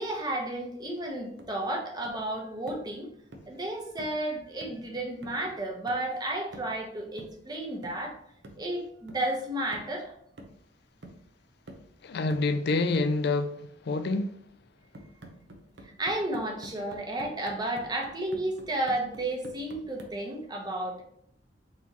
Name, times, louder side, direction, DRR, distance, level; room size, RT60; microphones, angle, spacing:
voice 1, 0.0-3.1 3.5-8.2 8.6-10.1 15.8-21.0, right 1 dB, 25° right, 0.9 m, -32 dB
sound 1, 1.4-1.6 2.0-2.3 2.7-2.9 3.3-3.6 4.0-4.2 4.6-4.9 5.2-5.5 5.9-6.1 6.5-6.8 7.2-7.4 7.8-8.1 8.4-8.7 9.1-9.3 9.7-10.0 10.4-10.7 11.0-11.3 11.7-11.9 12.3-12.6 12.9-13.2 14.9-20.2, right 1 dB, 75° right, 0.7 m, -48 dB
voice 2, 12.0-14.4, left 3 dB, 65° left, 0.4 m, -27 dB
4.1 x 3.0 x 4.0 m
head